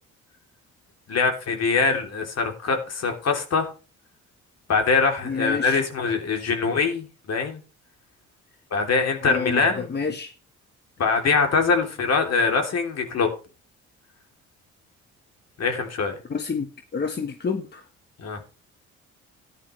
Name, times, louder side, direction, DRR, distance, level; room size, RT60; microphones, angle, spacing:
voice 1, 1.1-3.7 4.7-7.6 8.7-9.9 11.0-13.3 15.6-16.1 18.2-18.4, left 4 dB, 55° left, 4 dB, 3.2 m, -23 dB
voice 2, 5.2-5.8 9.2-10.3 16.3-17.8, left 5 dB, 35° left, 5 dB, 1.5 m, -29 dB
14.0 x 10.5 x 3.3 m, 0.33 s
cardioid pair, 90°, 30 cm